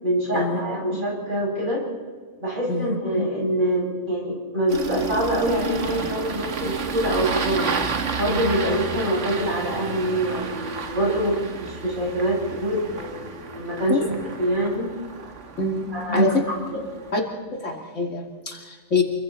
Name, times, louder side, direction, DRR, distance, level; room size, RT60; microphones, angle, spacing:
voice 1, 0.0-1.8 2.4-7.7 8.2-14.9 15.9-16.4 16.7-16.8, right 1 dB, 35° right, -3 dB, 7.6 m, -25 dB
Engine starting, 4.7-17.1, right 5 dB, 60° right, 1.6 m, -31 dB
voice 2, 15.6-16.3 17.1-17.2 17.5-19.0, left 3 dB, 60° left, 1 dB, 3.0 m, -25 dB
28.0 x 23.5 x 4.2 m, 1.5 s
omnidirectional pair, 1.4 m